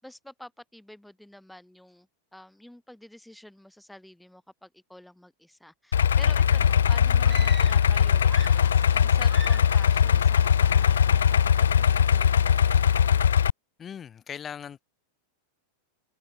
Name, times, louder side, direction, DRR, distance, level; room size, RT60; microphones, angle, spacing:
voice 1, 0.0-12.9, left 1 dB, ahead, 7.9 m, -48 dB
Idling, 5.9-13.5, left 8 dB, 65° left, 0.4 m, -20 dB
sound 1, 6.4-13.3, right 8 dB, 65° right, 1.2 m, -48 dB
sound 2, 7.2-7.9 8.2-9.0 9.3-9.8, right 4 dB, 15° right, 0.7 m, -43 dB
voice 2, 13.8-14.8, left 8 dB, 25° left, 2.7 m, -39 dB
figure-of-eight pair, 90°, 0 cm